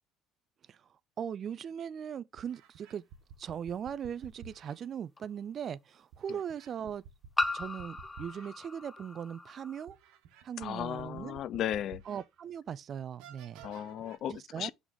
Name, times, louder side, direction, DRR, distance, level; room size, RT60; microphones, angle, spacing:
voice 1, 1.2-3.0 3.4-7.0 7.5-10.0 10.4-11.4 12.1-13.7 14.3-14.7, right 8 dB, 45° right, 0.5 m, -39 dB
sound 1, 1.7-1.8 2.4-4.8 6.1-8.5 9.0-9.1 9.9-12.3 12.7-12.8 13.2-14.2, right 6 dB, 75° right, 1.4 m, -52 dB
sound 2, 3.4-3.5 5.2-5.3 7.4-9.8, left 2 dB, 15° left, 0.8 m, -36 dB
voice 2, 10.6-12.0 13.6-14.7, left 11 dB, 55° left, 0.4 m, -35 dB
6.1 x 4.0 x 5.0 m
supercardioid pair, 85°, 0 cm